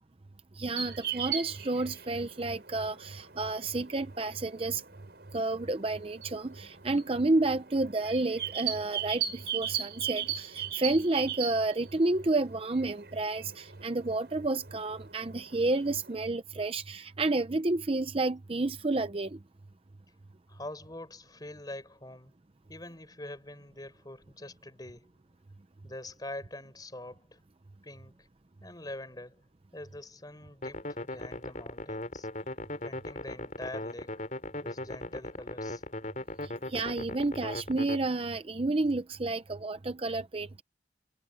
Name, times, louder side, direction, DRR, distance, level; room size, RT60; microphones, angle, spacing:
voice 1, 0.6-4.8 5.3-19.4 36.4-40.6, right 2 dB, 30° right, 0.6 m, -30 dB
sound 1, 0.8-16.1, right 9 dB, 60° right, 6.3 m, -39 dB
voice 2, 20.5-22.3 22.7-25.1 25.8-27.4 27.8-28.3 28.6-29.4 29.7-32.3 32.8-34.2 34.6-35.8, left 1 dB, 20° left, 4.7 m, -44 dB
sound 2, 30.6-38.0, left 1 dB, 45° left, 4.0 m, -38 dB
head